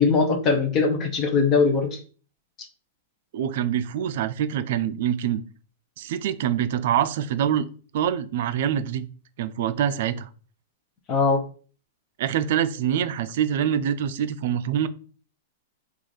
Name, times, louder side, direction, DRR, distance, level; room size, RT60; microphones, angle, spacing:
voice 1, 0.0-2.0 11.1-11.4, left 4 dB, 25° left, 5 dB, 0.7 m, -21 dB
voice 2, 3.3-5.4 6.0-7.7 7.9-9.1 9.4-10.3 12.2-14.9, right 9 dB, 60° right, 12 dB, 0.4 m, -25 dB
3.2 x 2.4 x 3.9 m, 0.40 s
supercardioid pair, 150°, 0 cm